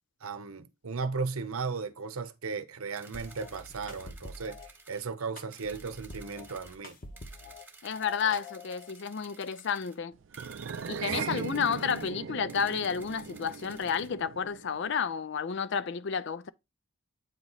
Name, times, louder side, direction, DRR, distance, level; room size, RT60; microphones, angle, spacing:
voice 1, 0.2-7.0 11.3-11.4, right 4 dB, 85° right, 0.7 m, -36 dB
sound 1, 3.0-5.1 5.5-6.8 7.2-10.0 10.3-12.1 12.5-14.1, right 4 dB, 10° right, 0.9 m, -54 dB
sound 2, 3.1-4.7 5.4-7.6 8.0-8.9, left 2 dB, 40° left, 0.9 m, -46 dB
voice 2, 7.8-10.2 10.9-16.5, left 6 dB, 55° left, 0.4 m, -31 dB
sound 3, 10.3-14.9, right 6 dB, 65° right, 0.4 m, -39 dB
8.5 x 3.0 x 3.9 m
head